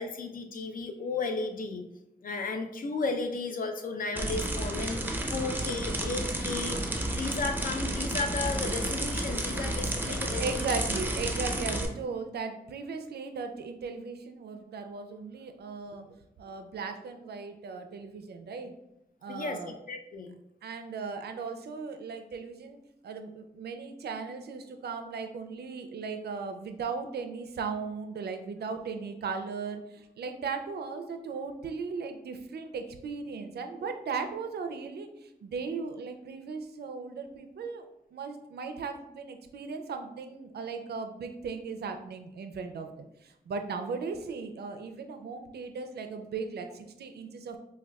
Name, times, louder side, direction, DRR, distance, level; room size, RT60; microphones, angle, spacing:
voice 1, 0.0-1.8 2.2-10.7 19.3-20.3, left 3 dB, 55° left, 6 dB, 0.5 m, -34 dB
sound 1, 4.2-11.9, right 1 dB, 10° right, 0.5 m, -31 dB
voice 2, 10.4-16.1 16.4-18.7 19.2-19.8 20.6-22.8 23.0-37.8 38.1-47.6, right 5 dB, 80° right, 6 dB, 0.4 m, -37 dB
4.6 x 2.2 x 2.2 m, 0.87 s
cardioid pair, 75°, 16 cm